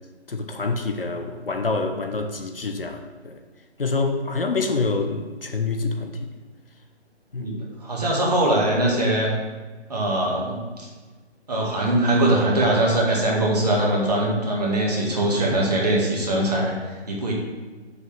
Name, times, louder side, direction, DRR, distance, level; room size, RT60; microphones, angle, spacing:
voice 1, 0.3-3.4 3.8-6.2 7.3-7.5, left 3 dB, 55° left, 5 dB, 1.0 m, -26 dB
voice 2, 7.4-9.3 9.9-10.9 11.5-17.3, right 1 dB, 35° right, -3 dB, 2.0 m, -22 dB
6.5 x 5.5 x 7.2 m, 1.3 s
hypercardioid pair, 175°, 34 cm